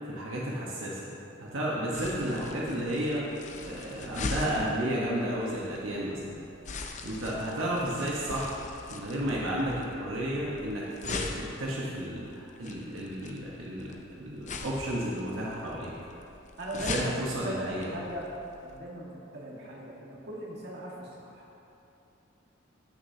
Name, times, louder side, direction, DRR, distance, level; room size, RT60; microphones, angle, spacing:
voice 1, 0.1-1.1 1.4-3.2 3.6-6.3 7.0-8.6 8.9-15.9 16.9-17.9, right 1 dB, 85° right, -5 dB, 1.1 m, -32 dB
sound 1, 1.9-18.8, left 3 dB, 40° left, 0.6 m, -41 dB
voice 2, 16.6-18.3 18.6-21.5, right 1 dB, 55° right, -4 dB, 1.6 m, -39 dB
14.5 x 6.4 x 2.8 m, 2.8 s
head